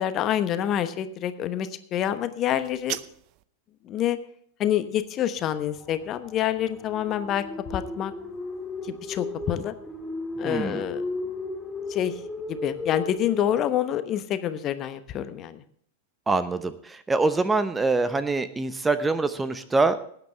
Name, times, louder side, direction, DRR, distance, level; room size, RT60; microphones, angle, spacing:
voice 1, 0.0-3.0 3.8-4.2 4.6-7.4 7.7-8.1 8.8-9.7 10.4-11.1 11.9-12.1 12.5-15.6, left 11 dB, 35° left, 11 dB, 1.0 m, -27 dB
sound 1, 2.5-3.5, right 17 dB, 45° right, 0.6 m, -37 dB
sound 2, 5.4-13.6, left 2 dB, 5° left, 2.1 m, -35 dB
voice 2, 10.4-10.8 16.3-20.0, right 3 dB, 10° right, 12 dB, 0.8 m, -24 dB
18.5 x 9.4 x 3.4 m, 0.63 s
figure-of-eight pair, 90°, 0 cm